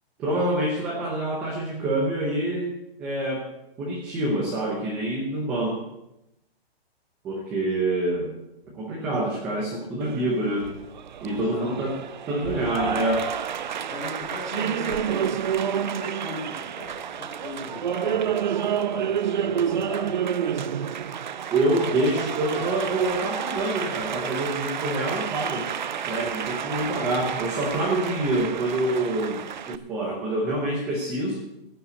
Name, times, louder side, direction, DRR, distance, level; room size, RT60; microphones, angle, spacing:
voice 1, 0.2-3.5 3.8-5.8 7.2-8.3 8.7-10.7 11.2-12.0 12.3-13.3 21.5-25.7 26.0-31.4, right 1 dB, 5° right, -3 dB, 0.6 m, -26 dB
Applause, 10.0-29.8, right 8 dB, 45° right, 0.5 m, -29 dB
voice 2, 11.4-11.9 13.9-15.3 15.7-20.2, left 3 dB, 15° left, -2 dB, 2.7 m, -39 dB
15.5 x 5.6 x 9.3 m, 0.88 s
hypercardioid pair, 175°, 31 cm